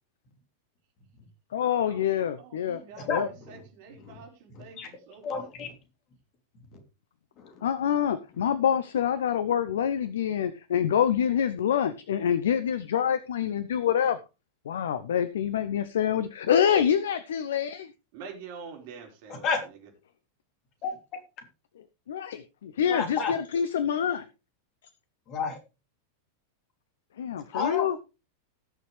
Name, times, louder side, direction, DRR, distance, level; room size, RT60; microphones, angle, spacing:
voice 1, 1.5-2.8 3.1-3.3 7.6-14.2 14.7-17.9 22.1-24.3 27.2-28.0, left 8 dB, 60° left, 15 dB, 0.7 m, -26 dB
voice 2, 2.4-5.5 18.1-19.5, right 5 dB, 50° right, 2 dB, 4.5 m, -46 dB
voice 3, 3.0-3.6 4.0-4.2 4.5-4.9 5.2-5.7 6.7-6.8 7.4-7.7 19.3-19.6 20.8-21.0 22.9-23.3 25.3-25.6 27.5-28.0, left 5 dB, 35° left, 6 dB, 3.1 m, -32 dB
19.0 x 6.8 x 3.3 m, 0.28 s
figure-of-eight pair, 90°, 0 cm